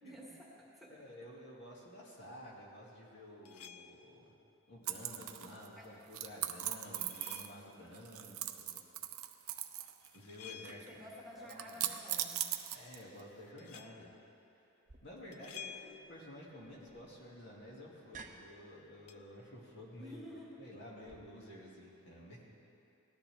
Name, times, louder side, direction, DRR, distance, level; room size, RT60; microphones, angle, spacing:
voice 1, 0.0-1.0 5.8-5.9 10.9-12.6 15.2-15.5 20.0-20.6, equal, ahead, -5 dB, 1.7 m, -51 dB
voice 2, 0.9-4.2 4.7-8.8 9.3-9.6 10.1-11.0 11.4-11.9 12.7-14.1 14.6-14.7 15.0-20.3 20.6-22.4, left 1 dB, 55° left, -4 dB, 2.3 m, -52 dB
sound 1, 3.5-4.2 6.6-7.8 9.9-11.1 13.6-14.1 15.3-16.3 19.1-19.2, left 8 dB, 85° left, 0.5 m, -52 dB
sound 2, 4.9-5.7 6.1-7.6 7.9-10.1 10.3-10.9 11.5-13.2, right 12 dB, 80° right, 0.7 m, -39 dB
sound 3, 14.9-21.2, right 4 dB, 35° right, 0.7 m, -58 dB
18.5 x 13.0 x 3.5 m, 2.7 s
head